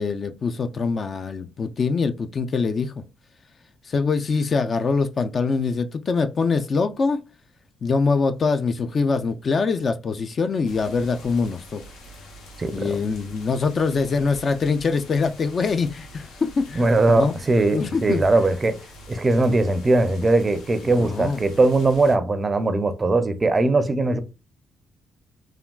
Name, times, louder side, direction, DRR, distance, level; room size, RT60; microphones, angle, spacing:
voice 1, 0.0-2.9 3.9-7.2 7.8-11.8 12.7-17.3 17.7-18.2 20.8-21.5, left 4 dB, 45° left, 0.3 m, -24 dB
sound 1, 10.6-22.2, equal, 85° left, 0.8 m, -45 dB
voice 2, 12.6-13.0 16.8-18.8 19.1-24.2, right 2 dB, 30° right, 0.4 m, -20 dB
3.5 x 2.2 x 2.2 m
cardioid pair, 90°, 0 cm